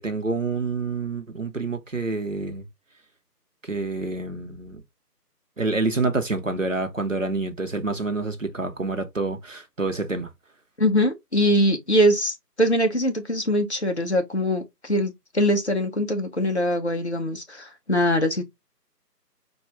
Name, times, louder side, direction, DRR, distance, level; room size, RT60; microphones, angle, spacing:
voice 1, 0.0-2.6 3.6-4.8 5.6-10.3, right 3 dB, 50° right, 0.8 m, -27 dB
voice 2, 10.8-18.4, equal, 45° left, 0.7 m, -22 dB
4.4 x 2.3 x 3.3 m
figure-of-eight pair, 170°, 49 cm